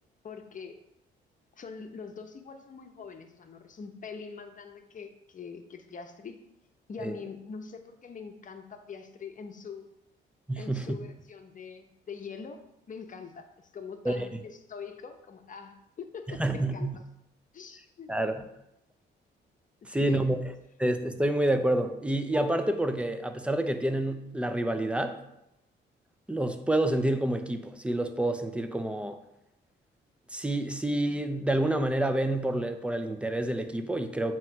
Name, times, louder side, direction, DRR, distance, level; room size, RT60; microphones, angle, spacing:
voice 1, 0.2-0.8 1.6-6.4 6.9-9.9 10.6-12.6 12.9-16.9 17.5-18.1 19.8-20.3, left 5 dB, 40° left, 6 dB, 0.8 m, -43 dB
voice 2, 10.5-10.9 14.0-14.3 16.3-17.0 18.1-18.4 19.8-20.4 20.8-25.2 26.3-29.2 30.3-34.4, right 1 dB, 5° right, 8 dB, 0.6 m, -28 dB
7.5 x 3.1 x 4.6 m, 0.83 s
cardioid pair, 90°, 20 cm